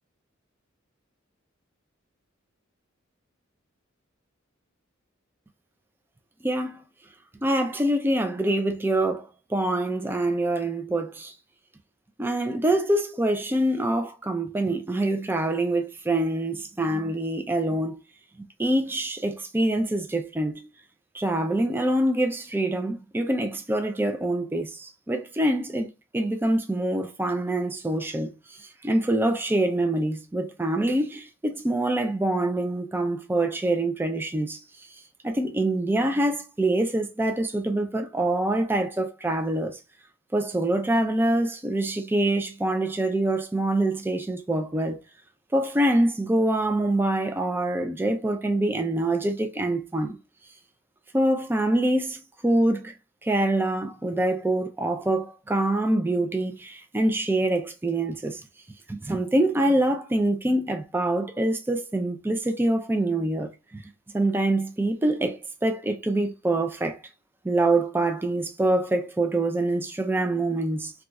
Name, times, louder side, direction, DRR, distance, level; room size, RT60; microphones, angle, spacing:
voice 1, 6.4-6.8 7.4-11.3 12.2-18.0 18.6-20.7 21.1-34.6 35.2-39.8 40.3-45.0 45.5-50.2 51.1-52.9 53.2-58.4 58.9-63.8 64.1-67.0 67.4-70.9, right 1 dB, 10° right, 0.3 m, -25 dB
2.3 x 2.3 x 3.9 m
head